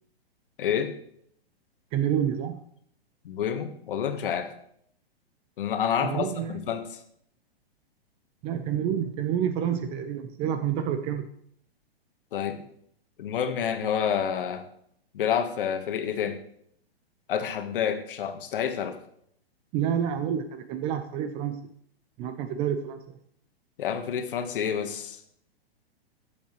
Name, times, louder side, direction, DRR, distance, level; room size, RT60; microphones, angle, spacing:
voice 1, 0.6-0.9 3.2-4.5 5.6-7.0 12.3-12.6 13.2-14.6 15.1-16.4 17.3-19.0 23.8-25.2, left 8 dB, 55° left, 8 dB, 1.4 m, -28 dB
voice 2, 1.9-2.6 6.0-6.6 8.4-11.3 19.7-21.7 22.2-23.2, right 9 dB, 20° right, 9 dB, 0.4 m, -28 dB
17.0 x 7.2 x 3.1 m, 0.68 s
figure-of-eight pair, 115°, 31 cm